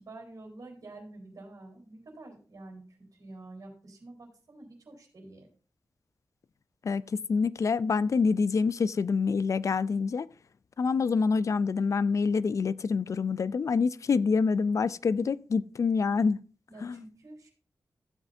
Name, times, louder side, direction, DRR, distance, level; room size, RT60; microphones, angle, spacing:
voice 1, 0.0-5.5 16.7-17.5, right 2 dB, 60° right, 4.0 m, -48 dB
voice 2, 6.8-10.3 10.8-16.4 16.8-17.0, left 5 dB, 50° left, 0.4 m, -26 dB
15.0 x 8.1 x 2.7 m
wide cardioid pair, 120°, 7 cm